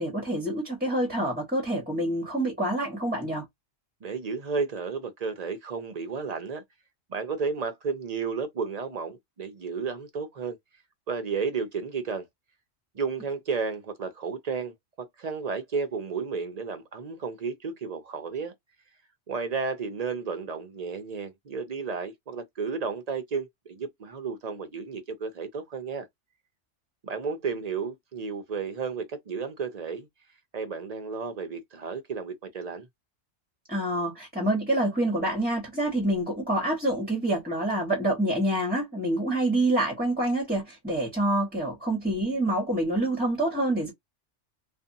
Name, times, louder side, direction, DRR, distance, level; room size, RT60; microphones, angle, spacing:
voice 1, 0.0-3.4 33.7-43.9, right 1 dB, 10° right, 1.0 m, -27 dB
voice 2, 4.0-6.6 7.1-10.6 11.1-12.3 12.9-18.5 19.3-26.1 27.0-30.1 30.5-32.9, right 5 dB, 45° right, 0.5 m, -32 dB
2.6 x 2.5 x 2.6 m
omnidirectional pair, 1.2 m